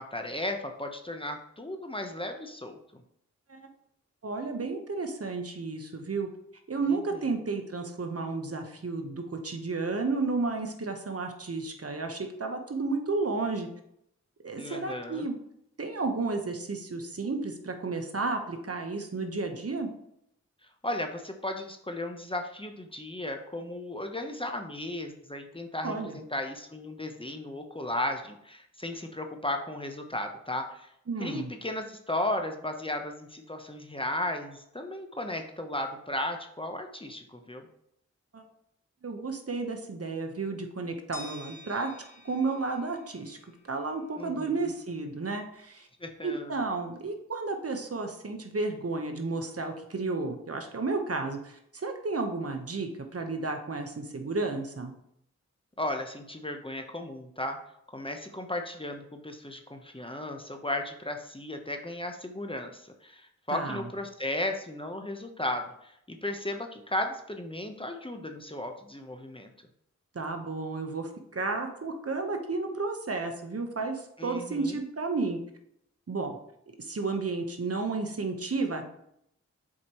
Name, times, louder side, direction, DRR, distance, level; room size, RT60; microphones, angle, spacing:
voice 1, 0.0-3.0 7.1-7.3 14.6-15.3 20.8-30.9 31.2-37.7 44.2-44.7 46.0-46.6 55.8-57.6 57.9-69.5 74.2-74.8, left 1 dB, 20° left, 4 dB, 0.9 m, -35 dB
voice 2, 4.2-6.3 6.7-13.7 14.4-15.3 15.8-19.9 25.8-26.2 31.1-31.5 38.3-38.4 39.0-41.9 42.2-43.4 43.7-45.9 46.2-54.9 63.5-63.9 70.1-75.4 76.1-76.4 76.8-78.8, right 3 dB, 50° right, 5 dB, 1.1 m, -32 dB
sound 1, 41.1-44.0, equal, 55° left, 1.6 m, -49 dB
7.1 x 4.9 x 3.0 m, 0.74 s
cardioid pair, 40°, 30 cm